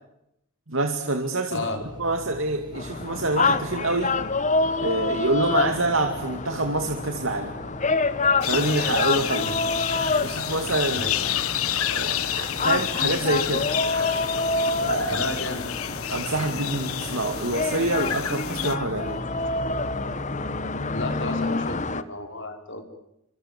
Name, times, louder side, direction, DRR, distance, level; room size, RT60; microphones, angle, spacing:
voice 1, 0.7-1.7 2.0-4.2 4.8-7.5 8.5-9.6 10.2-11.1 11.9-13.7 14.8-15.2 16.1-19.2, right 2 dB, 60° right, 5 dB, 2.5 m, -26 dB
voice 2, 1.5-1.8 9.4-9.6 10.9-11.3 15.1-15.6 15.9-16.0 16.3-16.7 20.9-22.9, left 2 dB, 55° left, 5 dB, 5.7 m, -33 dB
Engine, 1.8-20.7, left 1 dB, 20° right, 6.4 m, -43 dB
sound 1, 2.7-22.0, left 3 dB, 35° left, 1.2 m, -27 dB
sound 2, 8.4-18.8, left 11 dB, 80° left, 1.4 m, -30 dB
28.5 x 26.5 x 7.4 m, 0.83 s
head